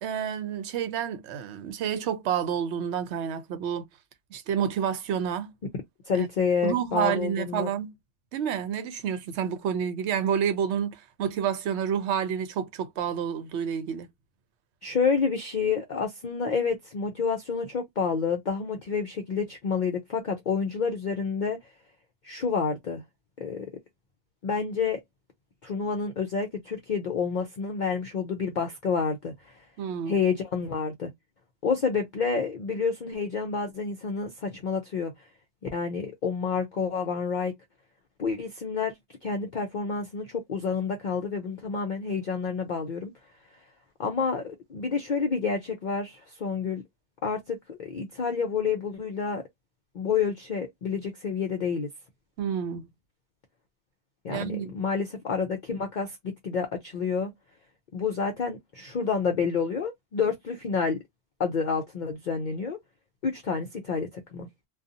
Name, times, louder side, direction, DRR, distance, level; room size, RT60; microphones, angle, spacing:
voice 1, 0.0-3.8 4.3-5.5 6.2-6.3 6.6-7.9 8.3-14.1 29.8-30.2 52.4-52.9 54.3-54.7, right 8 dB, 70° right, 0.9 m, -29 dB
voice 2, 6.1-7.7 14.8-21.6 22.2-23.0 23.4-23.7 24.4-25.0 25.6-29.5 30.1-31.1 31.6-35.1 35.7-37.5 38.2-38.9 39.2-43.1 44.0-46.8 47.2-49.4 49.9-51.9 54.2-57.3 57.9-61.0 61.4-62.8 63.2-64.5, left 5 dB, 55° left, 0.5 m, -29 dB
2.6 x 2.3 x 2.5 m
omnidirectional pair, 1.2 m